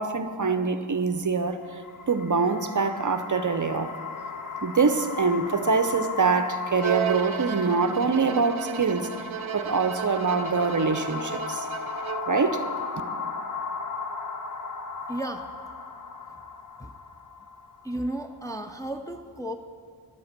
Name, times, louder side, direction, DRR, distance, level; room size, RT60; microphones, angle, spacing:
voice 1, 0.0-1.8 2.1-3.9 4.6-9.1 9.5-11.7 12.3-12.7, right 4 dB, 40° right, 0.6 m, -24 dB
sound 1, 1.5-18.7, left 5 dB, 40° left, 0.8 m, -36 dB
Bowed string instrument, 6.8-12.5, right 9 dB, 85° right, 0.6 m, -34 dB
voice 2, 15.1-15.5 16.8-16.9 17.8-19.6, right 1 dB, 10° left, 0.4 m, -33 dB
11.0 x 7.8 x 7.3 m
wide cardioid pair, 85°, 47 cm